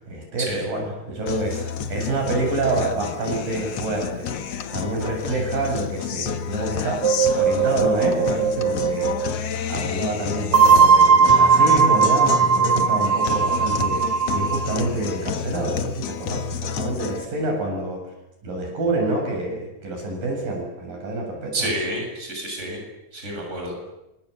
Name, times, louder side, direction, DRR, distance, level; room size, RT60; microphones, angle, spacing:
voice 1, 0.0-1.6 1.9-7.0 7.3-9.2 9.7-14.0 14.3-18.0 18.4-21.7, right 2 dB, 55° right, 1 dB, 8.9 m, -27 dB
Guitar, 1.3-17.2, left 7 dB, 60° left, 1.8 m, -30 dB
sound 1, 7.0-9.3 10.5-14.8, right 5 dB, 35° right, 3.9 m, -18 dB
voice 2, 21.5-22.8 23.1-23.7, right 1 dB, 15° right, 1 dB, 8.0 m, -29 dB
27.5 x 26.5 x 8.2 m, 0.91 s
omnidirectional pair, 4.8 m